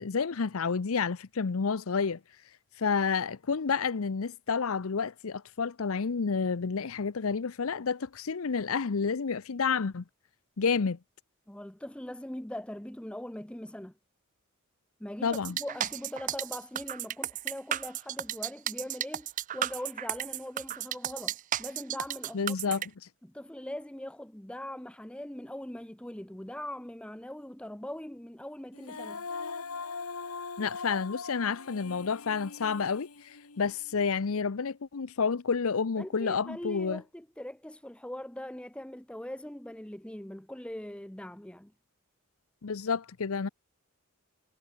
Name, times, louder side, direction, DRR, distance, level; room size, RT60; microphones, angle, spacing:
voice 1, 0.0-2.2 2.8-10.0 10.6-11.0 15.2-15.6 22.3-22.9 30.6-37.0 42.6-43.5, left 5 dB, 75° left, 0.6 m, -30 dB
voice 2, 11.5-13.9 15.0-22.6 23.2-29.2 36.0-41.7, left 1 dB, 5° left, 0.6 m, -41 dB
sound 1, 15.3-22.9, right 11 dB, 35° right, 0.4 m, -34 dB
Female singing, 28.7-33.9, left 4 dB, 90° left, 1.8 m, -41 dB
head